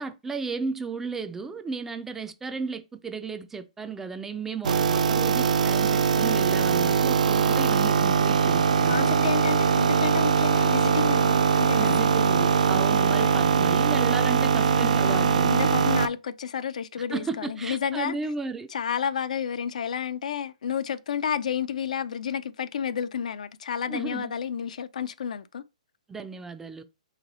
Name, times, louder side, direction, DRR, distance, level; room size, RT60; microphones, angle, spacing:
voice 1, 0.0-9.3 11.7-15.8 17.1-18.7 23.9-24.3 26.1-26.8, right 4 dB, 10° right, 0.4 m, -34 dB
sound 1, 4.6-16.1, right 6 dB, 75° right, 0.4 m, -22 dB
voice 2, 8.8-12.0 13.2-13.7 15.0-18.2 18.7-25.6, left 8 dB, 70° left, 0.4 m, -31 dB
3.7 x 3.1 x 4.0 m
hypercardioid pair, 145°, 4 cm